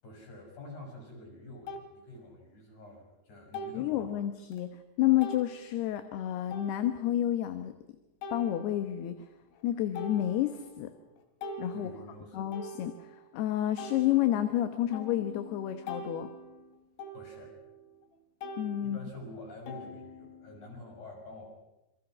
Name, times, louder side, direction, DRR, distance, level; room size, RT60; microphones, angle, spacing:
voice 1, 0.0-4.1 11.7-12.4 17.1-17.6 18.8-21.5, left 2 dB, 45° left, 1 dB, 7.6 m, -47 dB
sound 1, 0.8-0.9 1.7-1.9 3.5-3.9 4.5-4.6 5.2-5.5 6.5-7.1 8.2-9.1 9.5-9.7 9.9-10.8 11.2-13.3 13.8-18.1 18.4-20.7, left 1 dB, 90° left, 4.4 m, -44 dB
voice 2, 3.7-4.7 5.0-7.7 8.3-9.2 9.6-10.9 11.6-11.9 12.3-16.3 18.6-19.0, left 13 dB, 75° left, 8 dB, 3.0 m, -30 dB
27.5 x 23.5 x 6.2 m, 0.95 s
omnidirectional pair, 5.0 m